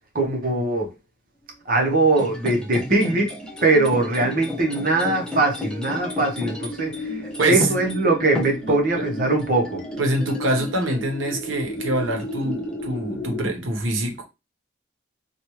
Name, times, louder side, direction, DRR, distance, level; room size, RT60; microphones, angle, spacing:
voice 1, 0.1-0.9 1.7-3.3 3.6-7.2 7.5-9.8, right 2 dB, 45° right, 0.9 m, -21 dB
sound 1, 1.8-13.4, left 1 dB, 55° left, 0.8 m, -35 dB
sound 2, 2.1-11.4 11.8-12.9, left 1 dB, 5° left, 0.6 m, -34 dB
voice 2, 7.4-7.7 8.7-9.1 10.0-14.2, right 1 dB, 85° right, 0.9 m, -25 dB
3.0 x 2.3 x 3.0 m
head